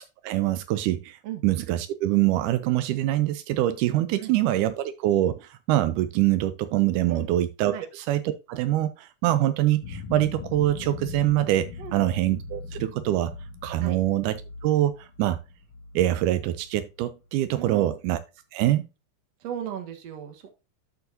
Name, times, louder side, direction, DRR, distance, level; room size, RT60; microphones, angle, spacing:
voice 1, 0.2-13.3 13.6-15.4 16.0-18.2 18.5-18.9, right 14 dB, 85° right, 2.1 m, -24 dB
sound 1, 9.8-16.9, left 4 dB, 65° left, 1.4 m, -40 dB
voice 2, 17.5-17.9 19.4-20.5, right 9 dB, 60° right, 2.3 m, -36 dB
13.0 x 4.6 x 2.6 m
omnidirectional pair, 3.5 m